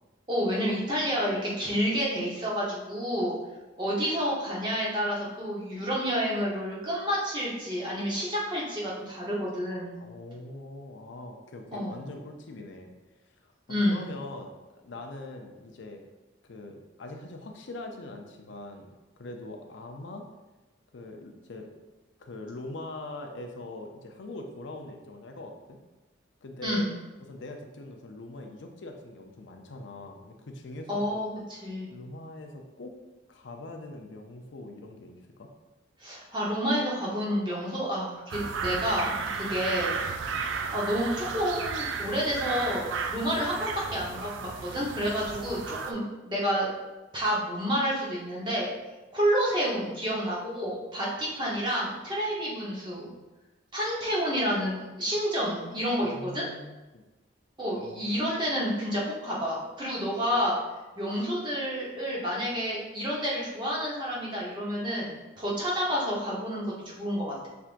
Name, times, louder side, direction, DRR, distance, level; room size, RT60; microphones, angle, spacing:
voice 1, 0.3-3.4 3.8-10.0 11.7-11.9 13.7-14.0 26.6-26.9 30.9-31.9 36.0-40.0 40.3-46.7 47.1-48.7 49.1-53.1 53.7-56.5 57.6-60.5 61.0-66.6 66.9-67.5, equal, 25° right, -5 dB, 1.0 m, -29 dB
voice 2, 10.0-12.9 13.4-13.5 13.8-16.0 16.4-18.9 19.2-20.2 20.9-21.7 22.2-25.8 26.4-31.2 31.9-32.9 33.3-35.5 56.0-57.0 57.8-58.1, left 2 dB, 65° left, 3 dB, 0.5 m, -42 dB
sound 1, 38.3-45.9, right 5 dB, 75° right, 0.4 m, -34 dB
5.7 x 3.4 x 2.5 m, 1.1 s
head